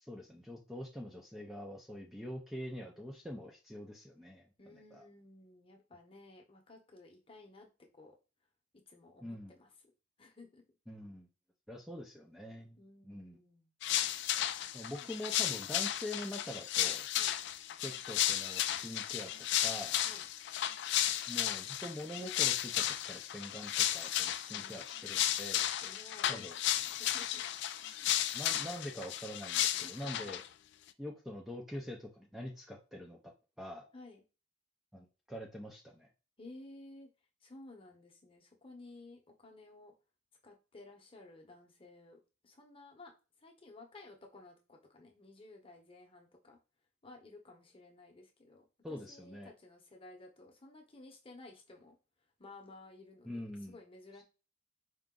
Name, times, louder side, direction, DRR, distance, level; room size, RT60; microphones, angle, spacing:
voice 1, 0.1-4.4 4.9-5.0 9.2-9.5 10.9-11.3 11.7-12.8 13.0-13.4 14.7-17.1 17.8-19.3 19.6-19.9 21.3-25.7 26.3-26.5 28.3-30.4 31.0-33.2 33.6-33.9 34.9-36.1 48.8-49.5 53.2-53.8, left 1 dB, ahead, -1 dB, 0.5 m, -44 dB
voice 2, 4.6-8.1 8.9-9.7 10.2-10.6 12.8-13.7 14.9-15.1 17.2-17.3 20.0-20.3 24.5-24.9 25.8-27.4 27.9-28.1 29.8-30.3 33.9-34.2 36.4-37.1 37.4-39.9 40.4-43.1 43.4-46.6 47.0-52.0 52.4-54.2, left 2 dB, 25° left, 2 dB, 0.9 m, -55 dB
sound 1, 13.8-30.5, left 12 dB, 55° left, 0.3 m, -34 dB
4.5 x 2.5 x 3.7 m, 0.31 s
head